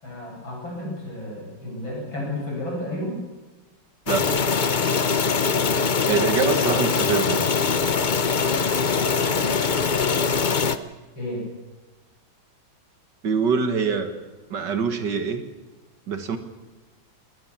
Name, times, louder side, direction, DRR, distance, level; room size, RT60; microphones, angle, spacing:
voice 1, 0.0-3.2 11.1-11.4, left 1 dB, 70° left, -2 dB, 8.7 m, -32 dB
sound 1, 4.1-10.8, left 5 dB, 90° left, 0.4 m, -22 dB
voice 2, 4.1-4.5 6.1-7.5 13.2-14.1 14.5-15.4 16.1-16.4, right 5 dB, 60° right, 9 dB, 2.1 m, -24 dB
20.0 x 19.5 x 7.2 m, 1.2 s
omnidirectional pair, 2.2 m